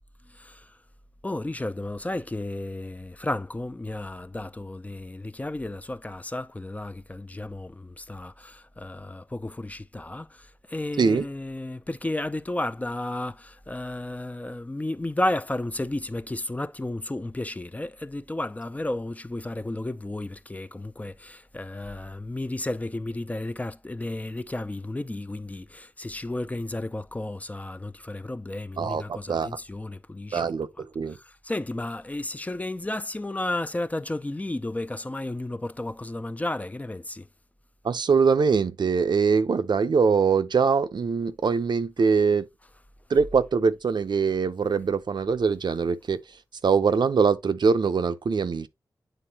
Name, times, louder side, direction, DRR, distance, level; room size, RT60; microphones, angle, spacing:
voice 1, 0.3-0.7 1.2-30.5 31.1-37.3, left 1 dB, 20° left, 0.4 m, -33 dB
voice 2, 28.8-29.5 30.3-31.1 37.8-42.5 43.1-46.2 46.6-48.7, right 5 dB, 75° right, 0.6 m, -23 dB
9.1 x 3.8 x 2.8 m
wide cardioid pair, 100°, 8 cm